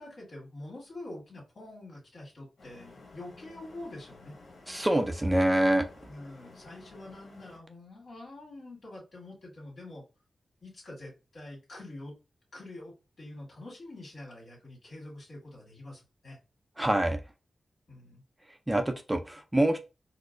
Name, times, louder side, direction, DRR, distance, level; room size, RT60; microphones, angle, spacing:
voice 1, 0.0-4.4 6.1-10.0 10.6-12.2 12.5-16.4 17.9-18.2, left 2 dB, 65° left, -2 dB, 1.9 m, -46 dB
sound 1, 2.6-7.6, left 3 dB, 80° left, 1.1 m, -53 dB
voice 2, 4.7-5.9 16.8-17.2 18.7-19.8, right 1 dB, 15° right, 6 dB, 0.5 m, -25 dB
4.4 x 2.0 x 2.5 m, 0.29 s
cardioid pair, 60°, 0 cm